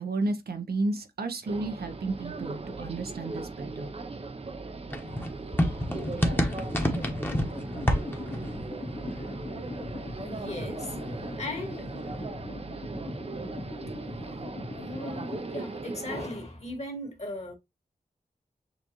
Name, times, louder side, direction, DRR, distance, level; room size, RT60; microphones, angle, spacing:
voice 1, 0.0-3.9, right 2 dB, 85° right, 0.8 m, -32 dB
sound 1, 1.4-16.3, right 3 dB, 40° right, 0.6 m, -39 dB
sound 2, 4.9-10.4 10.7-12.3, equal, 15° left, 1.1 m, -30 dB
sound 3, 5.8-15.4, left 2 dB, 60° left, 1.5 m, -40 dB
voice 2, 10.2-10.9 11.4-11.8 13.5-13.7 14.8-17.5, left 1 dB, 45° left, 1.9 m, -38 dB
6.7 x 2.4 x 2.9 m
cardioid pair, 55°, 16 cm